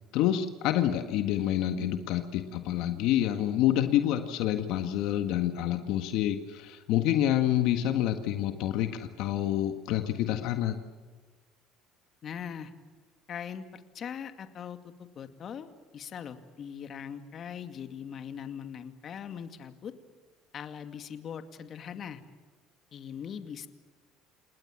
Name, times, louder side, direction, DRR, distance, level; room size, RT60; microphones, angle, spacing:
voice 1, 0.1-10.7, left 12 dB, 70° left, 7 dB, 1.7 m, -27 dB
voice 2, 12.2-12.7 13.3-19.9 20.5-22.2 22.9-23.7, left 8 dB, 45° left, 8 dB, 2.2 m, -41 dB
29.0 x 19.5 x 7.5 m, 1.4 s
supercardioid pair, 105°, 0 cm